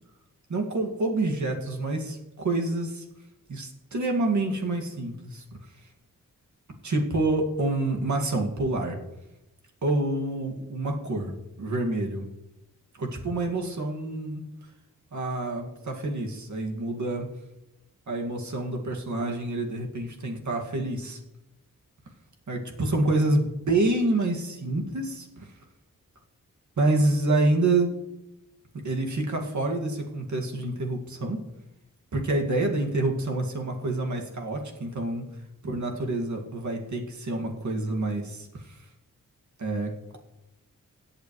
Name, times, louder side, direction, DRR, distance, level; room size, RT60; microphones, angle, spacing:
voice 1, 0.5-3.1 3.5-5.4 6.8-9.0 9.8-12.3 12.9-14.5 15.1-17.3 18.1-21.2 22.5-25.5 26.8-28.0 28.7-31.4 32.1-35.3 35.6-38.8 39.6-40.2, right 2 dB, 60° right, 1 dB, 2.1 m, -27 dB
16.5 x 8.7 x 3.2 m, 0.94 s
cardioid pair, 65°, 33 cm